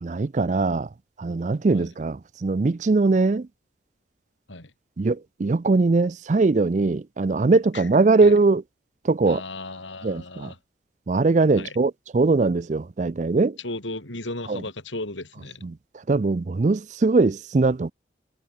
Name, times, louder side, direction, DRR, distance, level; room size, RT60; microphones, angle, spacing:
voice 1, 0.0-0.9 1.2-3.5 5.0-8.6 9.0-9.4 10.0-10.5 11.1-13.6 14.5-14.6 15.6-15.7 16.1-17.9, right 3 dB, 40° right, 0.4 m, -21 dB
voice 2, 9.3-10.6 11.6-11.8 13.6-15.6, left 2 dB, 85° left, 6.6 m, -35 dB
head